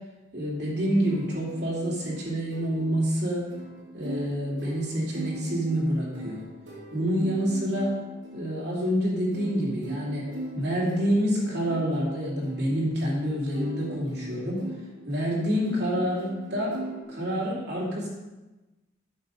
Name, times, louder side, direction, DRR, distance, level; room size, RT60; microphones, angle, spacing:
voice 1, 0.3-3.5 3.9-6.4 6.9-8.0 8.3-14.7 15.1-16.8 17.1-18.1, equal, 55° right, -5 dB, 2.8 m, -27 dB
sound 1, 1.0-17.0, right 2 dB, 75° right, 3.0 m, -41 dB
9.7 x 7.1 x 5.3 m, 1.1 s
head